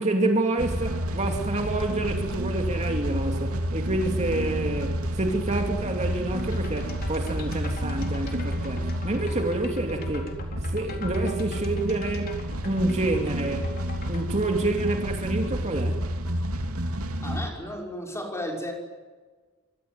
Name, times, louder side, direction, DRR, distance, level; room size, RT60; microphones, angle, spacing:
voice 1, 0.0-10.3 10.6-12.3 12.6-13.7 14.1-16.1, right 2 dB, 30° right, 3 dB, 2.7 m, -28 dB
sound 1, 0.6-17.5, equal, 80° right, 2.9 m, -30 dB
sound 2, 6.4-14.3, left 3 dB, 45° left, 4.1 m, -44 dB
voice 2, 17.2-18.7, left 1 dB, 15° left, 1 dB, 6.0 m, -33 dB
25.5 x 24.0 x 9.6 m, 1.4 s
head